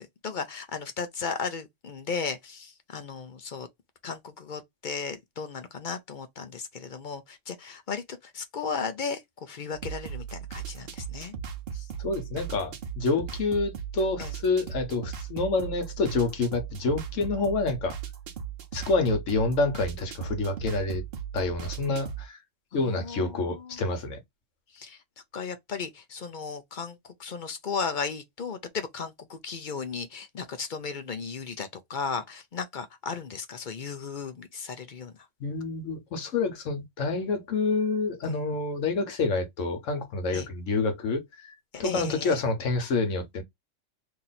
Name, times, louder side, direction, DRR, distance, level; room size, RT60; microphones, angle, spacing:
voice 1, 0.0-3.7 4.0-11.3 14.2-14.3 21.9-22.0 22.7-23.9 24.7-25.0 25.3-35.1 38.2-38.4 40.3-40.5 41.7-42.4, left 5 dB, 50° left, 0.7 m, -35 dB
sound 1, 9.7-22.3, right 8 dB, 55° right, 0.9 m, -38 dB
voice 2, 11.7-18.0 18.7-21.0 21.3-22.4 22.7-24.2 35.4-41.5 41.8-43.4, left 3 dB, 85° left, 1.3 m, -28 dB
2.9 x 2.7 x 4.0 m
omnidirectional pair, 1.3 m